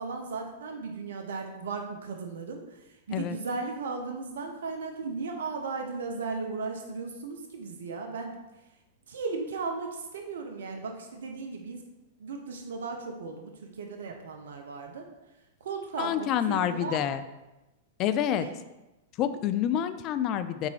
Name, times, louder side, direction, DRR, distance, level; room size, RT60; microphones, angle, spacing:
voice 1, 0.0-8.4 9.1-11.8 12.2-15.0 15.6-17.0 18.3-18.5, right 4 dB, 75° right, 3 dB, 0.8 m, -36 dB
voice 2, 16.0-17.2 18.0-18.5 19.2-20.7, left 10 dB, 40° left, 12 dB, 0.4 m, -27 dB
5.4 x 3.9 x 4.7 m, 1.0 s
hypercardioid pair, 110°, 0 cm